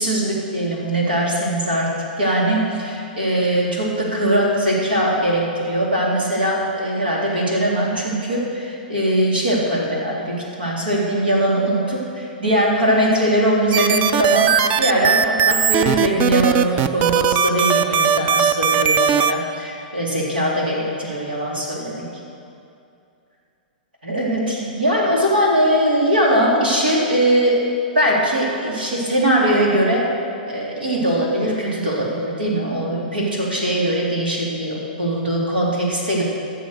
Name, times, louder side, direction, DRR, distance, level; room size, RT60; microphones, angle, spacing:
voice 1, 0.0-1.9 2.2-14.5 14.8-22.0 24.0-27.6 27.9-30.1 30.5-36.2, right 1 dB, 85° right, -4 dB, 3.6 m, -20 dB
sound 1, 13.7-19.3, right 7 dB, 35° right, 0.5 m, -18 dB
14.0 x 7.1 x 6.6 m, 2.6 s
hypercardioid pair, 115°, 5 cm